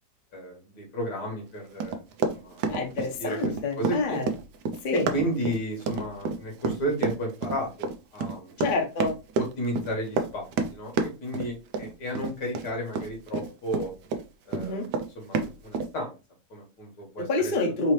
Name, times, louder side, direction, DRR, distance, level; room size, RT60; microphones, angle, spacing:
voice 1, 0.3-2.0 2.3-3.4 3.8-4.2 4.9-8.6 9.4-10.5 10.7-13.9 14.5-14.9 15.2-16.2 16.5-17.5, equal, 80° left, 0 dB, 2.3 m, -33 dB
Run, 1.8-14.2 14.5-15.9, right 4 dB, 80° right, 1.2 m, -29 dB
voice 2, 2.7-4.3 4.8-5.1 8.6-9.1 14.6-14.9 17.3-17.9, left 3 dB, 40° left, 3 dB, 0.8 m, -27 dB
4.8 x 2.8 x 3.2 m, 0.30 s
omnidirectional pair, 1.8 m